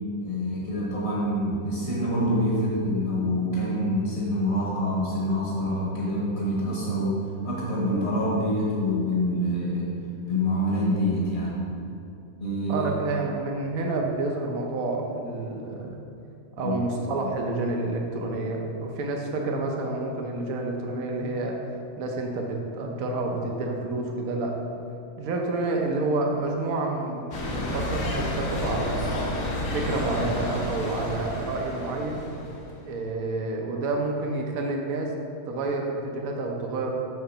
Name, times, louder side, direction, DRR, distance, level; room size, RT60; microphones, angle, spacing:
voice 1, 0.2-7.2 7.4-9.9 10.3-11.6 12.4-13.0 16.6-16.8, equal, 55° left, -5 dB, 1.4 m, -26 dB
voice 2, 12.7-15.9 16.6-21.6 22.0-24.6 25.2-29.1 29.7-32.2 32.8-35.1 35.5-36.9, right 2 dB, 80° right, 1 dB, 1.2 m, -29 dB
sound 1, 27.3-32.7, left 1 dB, 70° left, 1.4 m, -31 dB
6.9 x 3.8 x 5.5 m, 2.7 s
omnidirectional pair, 1.5 m